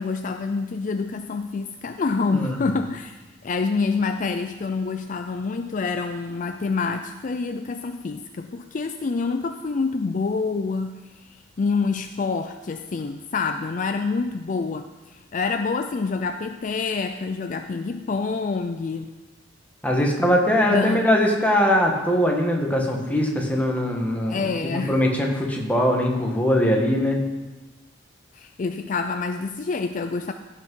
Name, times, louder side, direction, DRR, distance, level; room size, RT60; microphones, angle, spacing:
voice 1, 0.0-19.1 20.7-21.1 24.3-25.0 28.3-30.3, left 4 dB, 40° left, 7 dB, 0.4 m, -27 dB
voice 2, 2.3-2.7 19.8-27.2, left 1 dB, 10° left, 0 dB, 1.6 m, -21 dB
15.5 x 5.9 x 5.5 m, 1.1 s
head